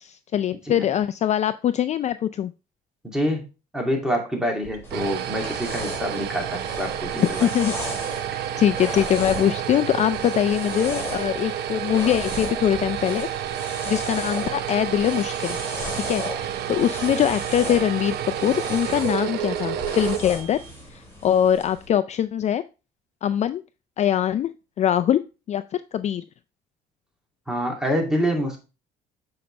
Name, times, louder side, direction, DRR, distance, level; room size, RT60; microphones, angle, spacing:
voice 1, 0.0-2.5 7.1-7.7 8.6-13.3 13.6-15.6 15.9-20.6 20.9-22.6 23.2-23.6 24.0-25.2 25.5-26.2, left 10 dB, 40° left, 12 dB, 0.4 m, -23 dB
voice 2, 3.1-3.4 3.7-7.5 8.3-8.4 27.5-28.6, equal, 5° right, 0 dB, 2.4 m, -26 dB
sound 1, 4.6-20.8, right 10 dB, 75° right, 0.8 m, -30 dB
sound 2, 4.8-21.9, left 1 dB, 15° left, 4.0 m, -37 dB
7.8 x 5.2 x 3.2 m, 0.31 s
cardioid pair, 110°, 17 cm